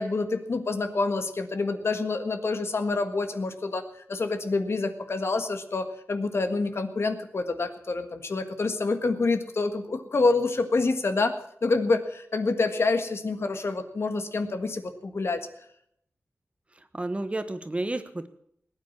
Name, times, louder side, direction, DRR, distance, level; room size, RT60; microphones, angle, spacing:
voice 1, 0.0-11.3 11.6-15.5, left 3 dB, 60° left, 8 dB, 1.6 m, -27 dB
voice 2, 16.7-18.3, right 2 dB, 25° right, 10 dB, 1.2 m, -31 dB
19.5 x 9.3 x 7.3 m, 0.69 s
wide cardioid pair, 105°, 5 cm